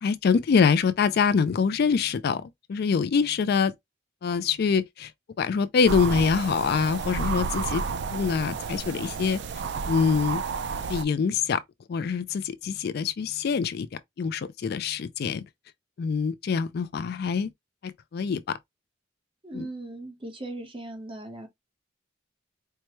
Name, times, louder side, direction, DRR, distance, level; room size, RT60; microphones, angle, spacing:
voice 1, 0.0-3.7 4.2-5.1 5.4-7.8 8.1-9.4 9.9-10.4 10.9-11.6 11.9-15.4 16.0-17.5 17.8-18.6 19.5-19.7, left 6 dB, 55° left, 0.3 m, -25 dB
sound 1, 5.9-11.0, right 5 dB, 60° right, 0.4 m, -31 dB
voice 2, 19.4-21.5, right 2 dB, 25° right, 1.0 m, -38 dB
4.6 x 2.1 x 3.0 m
head